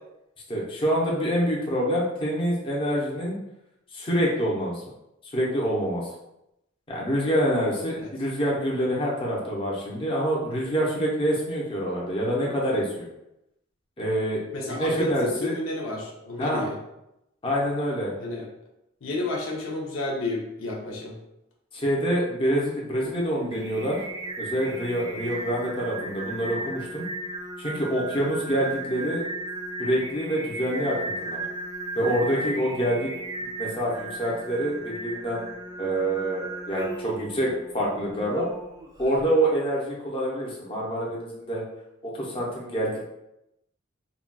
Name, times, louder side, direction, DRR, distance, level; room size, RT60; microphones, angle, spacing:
voice 1, 0.5-3.4 3.9-4.8 5.3-6.0 6.9-13.1 14.0-15.5 16.4-16.6 17.4-18.1 21.7-24.0 24.4-27.1 27.6-29.2 29.8-30.9 31.2-31.4 32.0-33.1 33.4-35.5 35.8-38.5 39.0-41.6 42.0-43.1, equal, 25° left, -4 dB, 0.6 m, -26 dB
voice 2, 14.5-16.7 18.2-18.5 19.0-21.1, left 2 dB, 75° left, -1 dB, 0.6 m, -31 dB
Singing, 23.0-39.3, right 2 dB, 20° right, 0.3 m, -36 dB
3.9 x 2.3 x 2.2 m, 0.86 s
head